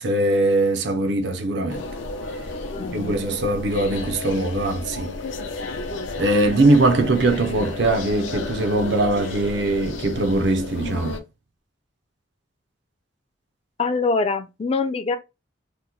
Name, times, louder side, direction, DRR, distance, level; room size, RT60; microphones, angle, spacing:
voice 1, 0.0-1.9 2.9-5.1 6.2-11.2, right 2 dB, 60° right, 0.5 m, -21 dB
sound 1, 1.7-11.2, left 2 dB, 80° left, 0.5 m, -32 dB
voice 2, 2.7-3.2 13.8-15.2, left 4 dB, 30° left, 0.3 m, -24 dB
2.9 x 2.0 x 3.7 m
head